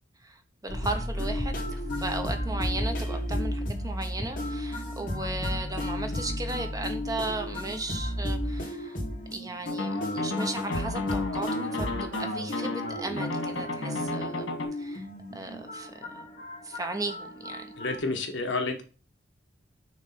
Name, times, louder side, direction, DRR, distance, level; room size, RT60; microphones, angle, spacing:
voice 1, 0.2-1.6 2.0-9.0 9.3-15.1 15.3-16.3 16.6-17.7, right 2 dB, 20° right, 0.8 m, -36 dB
sound 1, 0.7-18.0, left 1 dB, 45° left, 2.1 m, -33 dB
sound 2, 9.7-14.7, left 2 dB, 85° left, 1.8 m, -33 dB
voice 2, 17.8-18.8, left 3 dB, 65° left, 1.2 m, -30 dB
6.3 x 3.2 x 5.7 m
head